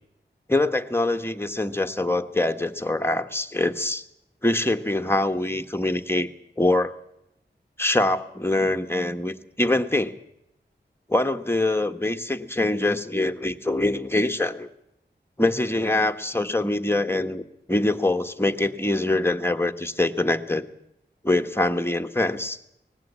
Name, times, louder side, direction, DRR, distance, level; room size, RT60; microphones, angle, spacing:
voice 1, 0.5-4.0 4.4-6.3 6.6-6.9 7.8-10.1 11.1-14.7 15.4-17.4 17.7-20.6 21.2-22.6, left 2 dB, 10° left, 6 dB, 1.5 m, -24 dB
19.5 x 15.5 x 8.8 m, 0.82 s
cardioid pair, 40°, 19 cm